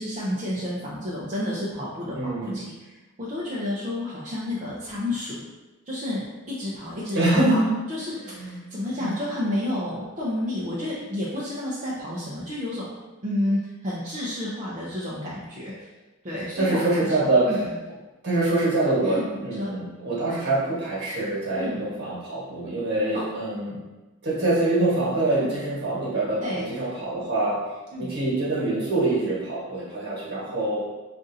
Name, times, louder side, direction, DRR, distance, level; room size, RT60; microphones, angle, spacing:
voice 1, 0.0-2.9 3.2-5.4 5.9-12.9 13.2-15.9 16.2-17.1 17.5-17.7 19.0-19.7 21.6-21.8 23.1-23.3 25.3-25.5 26.4-26.7 27.9-28.1, left 1 dB, 35° right, -7 dB, 0.6 m, -30 dB
voice 2, 2.1-2.6 7.1-7.7 8.3-8.6 9.0-9.1 16.6-17.5 18.2-23.8 24.2-27.6 28.0-30.8, right 2 dB, 50° right, -6 dB, 1.4 m, -25 dB
5.1 x 2.5 x 2.7 m, 1.2 s
head